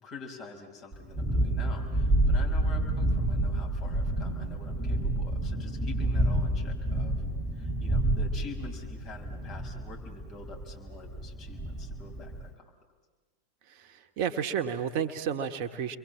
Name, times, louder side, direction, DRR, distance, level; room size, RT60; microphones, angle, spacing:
voice 1, 0.0-7.2 7.5-12.7, left 4 dB, 35° left, 1 dB, 6.0 m, -46 dB
Thunderstorm, 0.9-12.5, right 1 dB, 15° right, 2.5 m, -29 dB
voice 2, 13.6-16.0, right 8 dB, 45° right, 8 dB, 1.3 m, -32 dB
30.0 x 23.0 x 7.4 m, 1.3 s
figure-of-eight pair, 90°, 0 cm